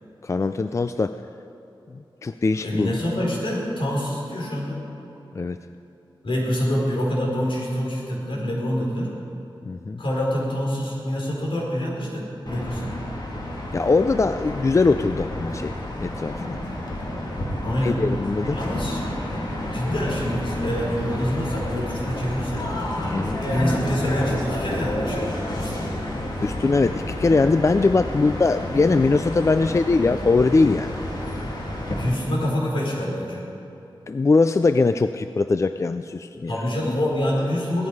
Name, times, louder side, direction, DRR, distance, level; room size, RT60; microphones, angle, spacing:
voice 1, 0.2-1.2 2.2-2.9 5.4-5.6 9.7-10.0 13.7-16.6 17.8-18.6 23.1-23.4 26.4-30.9 34.1-36.5, left 3 dB, 35° left, 10 dB, 0.3 m, -21 dB
voice 2, 2.6-4.8 6.2-9.1 10.0-12.9 17.6-18.0 18.5-19.0 19.3-22.7 23.5-25.8 32.0-33.4 36.5-37.9, equal, 70° left, -4 dB, 4.6 m, -26 dB
sound 1, 12.5-32.1, left 1 dB, 50° left, 2.7 m, -30 dB
18.0 x 13.5 x 4.9 m, 3.0 s
wide cardioid pair, 115°, 9 cm